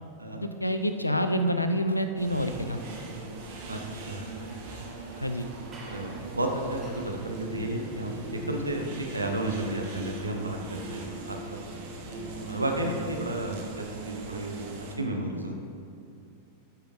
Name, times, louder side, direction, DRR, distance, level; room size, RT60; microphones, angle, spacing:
voice 1, 0.3-2.8 5.2-5.5, equal, 85° left, 8 dB, 0.4 m, -27 dB
sound 1, 0.7-8.6, right 2 dB, 25° right, 1.3 m, -51 dB
sound 2, 2.2-15.0, right 3 dB, 50° right, 0.9 m, -41 dB
voice 2, 3.7-4.3 5.9-11.6 12.4-14.7 15.0-15.5, right 1 dB, 80° right, 2 dB, 0.8 m, -32 dB
sound 3, 6.4-13.6, left 1 dB, 5° right, 1.1 m, -44 dB
8.1 x 8.1 x 3.1 m, 2.6 s
figure-of-eight pair, 90°, 0 cm